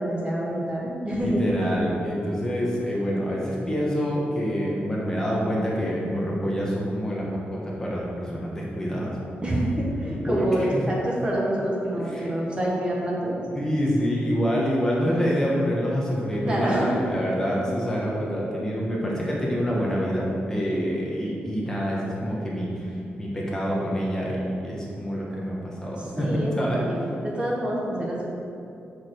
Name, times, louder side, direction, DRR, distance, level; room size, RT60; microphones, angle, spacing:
voice 1, 0.0-1.4 9.4-13.4 16.4-17.0 25.9-28.3, right 1 dB, 25° right, -4 dB, 1.1 m, -27 dB
voice 2, 1.2-9.1 10.3-10.7 12.0-12.3 13.5-26.3 26.5-26.8, equal, 15° left, -4 dB, 1.2 m, -26 dB
6.5 x 4.9 x 6.1 m, 2.7 s
wide cardioid pair, 170°, 4 cm